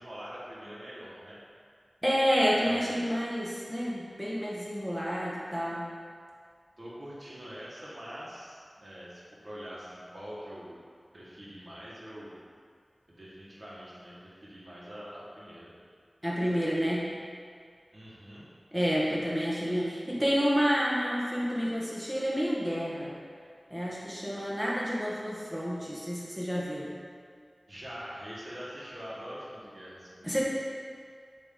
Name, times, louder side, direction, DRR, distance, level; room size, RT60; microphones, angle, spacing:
voice 1, 0.0-1.4 2.6-3.0 6.8-10.8 11.1-12.3 13.1-15.7 17.9-18.4 27.7-30.4, equal, 50° right, -7 dB, 1.3 m, -44 dB
voice 2, 2.0-5.8 16.2-17.1 18.7-23.1 23.7-26.9 30.2-30.4, equal, 5° right, -7 dB, 1.0 m, -29 dB
8.5 x 2.9 x 3.7 m, 2.1 s
wide cardioid pair, 70°, 0 cm